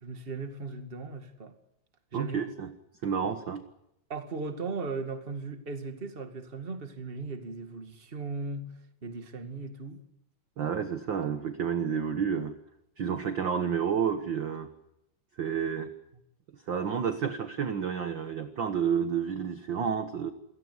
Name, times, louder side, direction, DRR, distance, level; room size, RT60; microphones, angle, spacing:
voice 1, 0.0-1.5 2.1-2.4 3.2-3.4 4.1-10.0, right 3 dB, 20° right, 1.6 m, -37 dB
voice 2, 2.1-2.7 3.0-3.6 10.6-12.5 13.0-14.7 15.4-15.9 16.7-20.3, right 7 dB, 55° right, 1.3 m, -30 dB
28.0 x 18.0 x 9.6 m
omnidirectional pair, 4.0 m